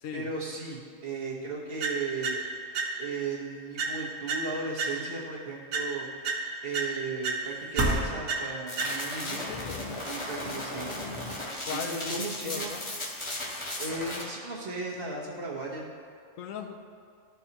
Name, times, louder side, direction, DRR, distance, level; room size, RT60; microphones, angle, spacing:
voice 1, 0.1-2.4 3.0-6.1 6.6-9.5 10.1-10.9 11.7-12.8 13.8-15.9, right 3 dB, 50° right, -5 dB, 1.3 m, -36 dB
sound 1, 1.8-3.3 3.8-5.3 5.7-9.3, right 4 dB, 90° right, 1.1 m, -34 dB
sound 2, 7.4-8.8 9.4-9.5 9.9-13.8, right 1 dB, 70° right, 1.4 m, -36 dB
sound 3, 8.7-14.2, left 1 dB, 25° left, 0.9 m, -36 dB
voice 2, 9.2-9.9 11.7-12.9 16.4-16.8, left 6 dB, 85° left, 5 dB, 1.0 m, -38 dB
13.0 x 4.5 x 2.9 m, 2.2 s
omnidirectional pair, 1.3 m